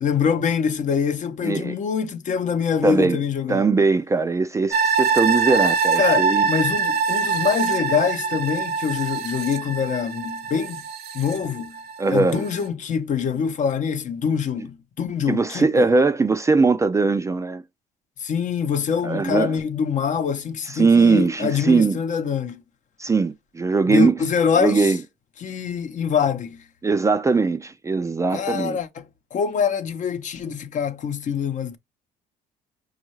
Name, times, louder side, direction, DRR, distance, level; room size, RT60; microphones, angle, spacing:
voice 1, 0.0-3.6 6.0-10.8 11.1-11.7 12.1-15.9 18.2-22.6 23.9-24.9 25.4-26.6 28.3-31.8, left 6 dB, 45° left, 0.8 m, -24 dB
voice 2, 1.4-1.8 2.8-3.2 3.5-6.5 12.0-12.4 15.3-17.6 19.0-19.5 20.7-22.0 23.0-24.2 24.6-25.0 26.8-28.8, right 4 dB, 20° right, 0.4 m, -20 dB
sound 1, 4.7-12.0 12.4-12.5, right 5 dB, 70° right, 0.6 m, -23 dB
5.3 x 2.4 x 3.0 m
cardioid pair, 110°, 17 cm